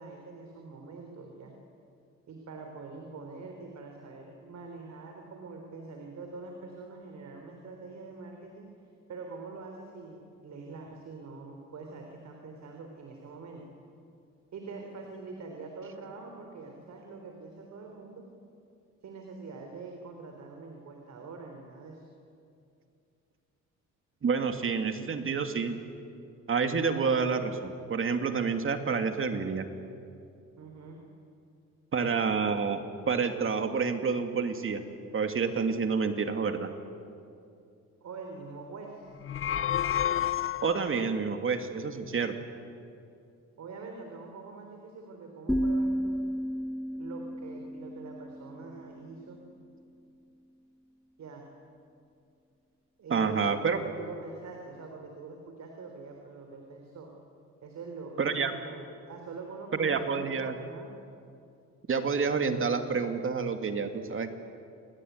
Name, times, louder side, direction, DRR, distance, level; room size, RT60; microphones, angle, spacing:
voice 1, 0.0-1.6 2.3-8.7 9.1-13.6 14.5-18.3 19.0-22.1 30.6-31.0 38.0-39.1 43.6-46.2 46.9-49.4 51.2-51.4 53.0-57.1 57.6-60.9, right 4 dB, 65° right, 3 dB, 4.0 m, -44 dB
voice 2, 24.2-25.8 26.5-29.6 31.9-34.8 35.1-36.7 40.6-42.4 53.1-53.8 58.2-58.5 59.8-60.6 61.9-64.3, right 5 dB, 45° right, 7 dB, 2.6 m, -28 dB
sound 1, 39.1-41.1, left 10 dB, 45° left, 0.8 m, -30 dB
sound 2, 45.5-49.4, equal, 5° left, 1.2 m, -33 dB
28.0 x 20.0 x 9.5 m, 2.5 s
cardioid pair, 90°, 30 cm